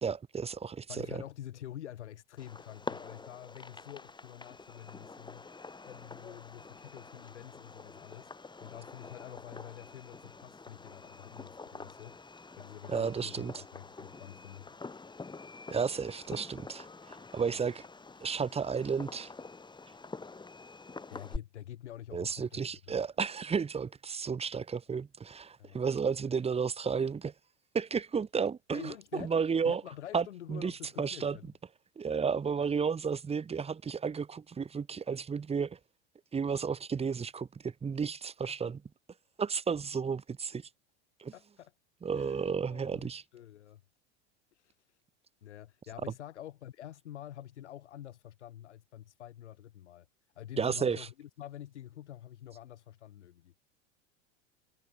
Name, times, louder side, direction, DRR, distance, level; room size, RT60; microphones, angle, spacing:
voice 1, 0.0-1.2 11.7-11.8 12.9-13.6 15.7-17.8 18.2-19.3 22.1-27.3 27.7-28.9 29.2-29.8 30.1-31.4 32.0-35.8 36.3-38.8 39.4-40.6 41.2-41.3 42.0-43.2 50.6-51.1, right 6 dB, 20° right, 1.2 m, -32 dB
voice 2, 0.9-5.5 5.8-12.2 12.6-14.7 21.1-22.6 25.6-25.8 28.7-31.5 38.4-38.5 41.3-41.7 42.1-43.8 44.5-44.7 45.4-50.1 50.4-53.5, left 12 dB, 85° left, 7.5 m, -47 dB
Fireworks, 2.4-21.4, left 3 dB, 15° left, 3.0 m, -47 dB
hypercardioid pair, 100°, 34 cm